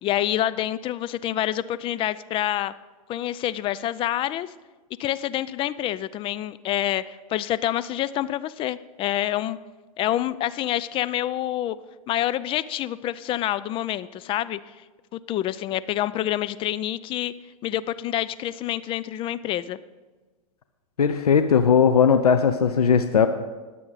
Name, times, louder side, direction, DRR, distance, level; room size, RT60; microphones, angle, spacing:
voice 1, 0.0-2.7 3.1-4.5 5.0-9.6 10.0-11.8 12.1-14.6 15.1-17.3 17.6-19.8, left 13 dB, 30° left, 15 dB, 0.4 m, -27 dB
voice 2, 21.0-23.3, left 6 dB, 90° left, 9 dB, 0.6 m, -18 dB
20.0 x 7.6 x 4.1 m, 1.3 s
hypercardioid pair, 110°, 19 cm